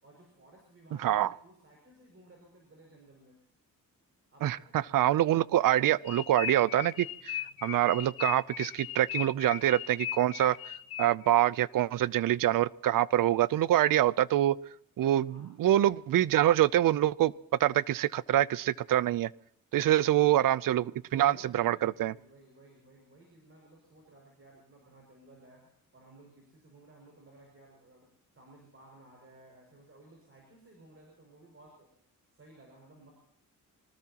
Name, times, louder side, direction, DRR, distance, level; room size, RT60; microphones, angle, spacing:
voice 1, 0.0-3.4 4.3-5.0 15.2-15.5 15.9-16.0 21.2-28.1 28.3-31.9 32.3-33.1, right 2 dB, 40° right, 0 dB, 6.1 m, -57 dB
voice 2, 4.9-10.6 11.0-14.6 15.0-17.3 17.6-19.3 19.7-22.1, right 13 dB, 65° right, 20 dB, 0.6 m, -25 dB
sound 1, 6.1-11.4, left 12 dB, 85° left, 0.9 m, -38 dB
25.5 x 19.5 x 2.9 m, 0.73 s
cardioid pair, 125°, 35 cm